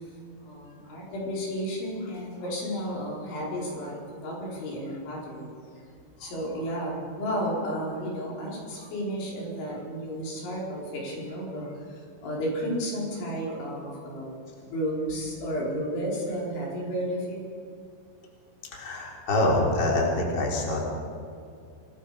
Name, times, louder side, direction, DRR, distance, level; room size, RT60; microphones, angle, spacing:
voice 1, 0.4-5.8 6.2-14.3 14.6-17.4, equal, 75° left, -3 dB, 7.1 m, -32 dB
voice 2, 18.7-20.8, left 1 dB, 25° left, -2 dB, 3.9 m, -25 dB
27.5 x 20.5 x 5.1 m, 2.4 s
omnidirectional pair, 5.4 m